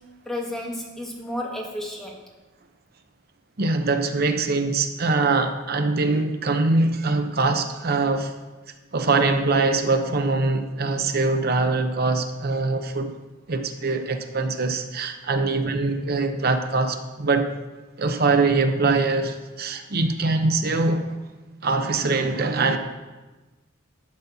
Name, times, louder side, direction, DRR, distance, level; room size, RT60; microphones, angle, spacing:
voice 1, 0.2-2.2 15.3-15.5, left 1 dB, ahead, -2 dB, 1.5 m, -32 dB
voice 2, 3.6-8.3 8.9-13.1 13.5-17.6 18.0-21.2 21.6-22.8, right 3 dB, 50° right, 7 dB, 0.7 m, -23 dB
11.5 x 4.3 x 6.9 m, 1.2 s
head